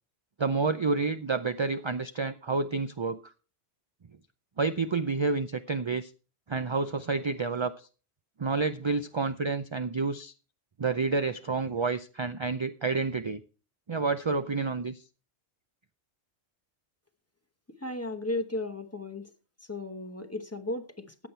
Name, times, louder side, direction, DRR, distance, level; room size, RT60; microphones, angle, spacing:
voice 1, 0.4-3.3 4.6-6.1 6.5-7.9 8.4-10.3 10.8-13.4 13.9-15.0, right 4 dB, 40° right, 11 dB, 0.4 m, -29 dB
voice 2, 17.8-19.3 19.7-21.3, left 2 dB, 15° left, 8 dB, 1.1 m, -35 dB
14.5 x 8.4 x 4.5 m, 0.36 s
omnidirectional pair, 1.2 m